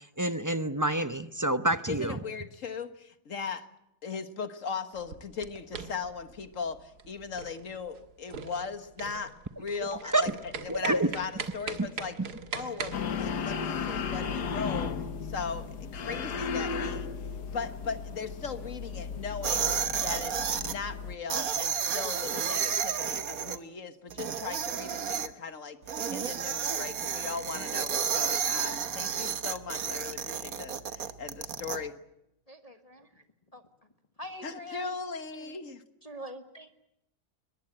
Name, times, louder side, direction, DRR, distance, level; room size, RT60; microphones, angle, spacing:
voice 1, 0.0-2.2 10.1-10.2 10.7-11.1, right 1 dB, 20° right, 12 dB, 0.6 m, -27 dB
voice 2, 1.9-3.6 4.0-9.3 9.6-12.2 12.5-17.1 17.5-19.7 20.0-25.8 26.1-32.0 34.4-35.8, left 5 dB, 55° left, 11 dB, 1.7 m, -38 dB
sound 1, 4.9-13.0, right 5 dB, 75° right, 2.1 m, -41 dB
sound 2, 12.9-21.2, left 6 dB, 80° left, 1.9 m, -35 dB
sound 3, 19.4-20.7 21.3-23.6 24.1-25.3 25.9-31.8, right 7 dB, 60° right, 1.5 m, -31 dB
voice 3, 32.5-33.1 33.5-33.6 34.2-35.0 36.0-36.7, equal, 25° left, 7 dB, 1.4 m, -43 dB
22.5 x 21.0 x 8.7 m, 0.84 s
omnidirectional pair, 1.7 m